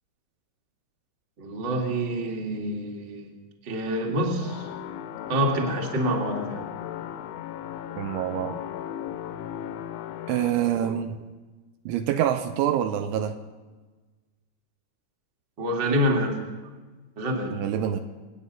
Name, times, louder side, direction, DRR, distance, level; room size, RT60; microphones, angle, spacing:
voice 1, 1.4-3.3 3.6-4.7 5.3-6.6 6.9-7.0 15.6-16.5 17.2-17.6, equal, 40° right, 0 dB, 1.6 m, -27 dB
sound 1, 4.4-10.5, left 10 dB, 80° left, 2.9 m, -36 dB
voice 2, 8.0-8.6 10.3-11.2 11.9-13.4 17.5-18.0, right 10 dB, 80° right, 7 dB, 3.0 m, -26 dB
27.5 x 9.3 x 5.5 m, 1.3 s
omnidirectional pair, 5.8 m